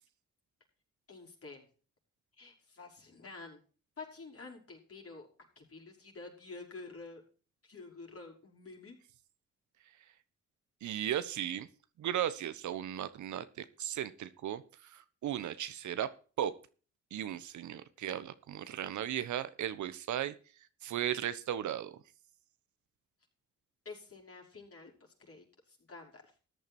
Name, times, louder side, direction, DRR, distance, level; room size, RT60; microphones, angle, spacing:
voice 1, 1.1-1.7 2.4-3.6 4.0-5.3 5.6-7.2 7.6-9.0 23.9-24.9 25.3-26.3, left 3 dB, 50° left, 0 dB, 5.5 m, -49 dB
voice 2, 10.8-11.7 12.0-16.1 16.4-16.5 17.1-20.3 20.8-22.0, right 11 dB, 80° right, 14 dB, 1.1 m, -36 dB
14.0 x 9.4 x 4.4 m, 0.37 s
supercardioid pair, 55°, 29 cm